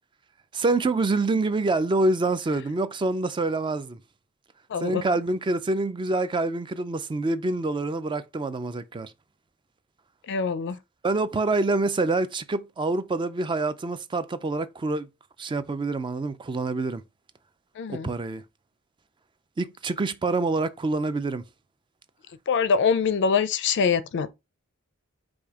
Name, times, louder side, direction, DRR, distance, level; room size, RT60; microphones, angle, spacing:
voice 1, 0.5-4.0 4.8-9.1 11.0-15.1 15.4-17.0 17.9-18.4 19.6-21.4, right 2 dB, 20° right, 0.3 m, -26 dB
voice 2, 4.7-5.0 10.3-10.8 17.8-18.1 22.5-24.3, left 6 dB, 55° left, 0.4 m, -24 dB
5.0 x 2.6 x 3.5 m
head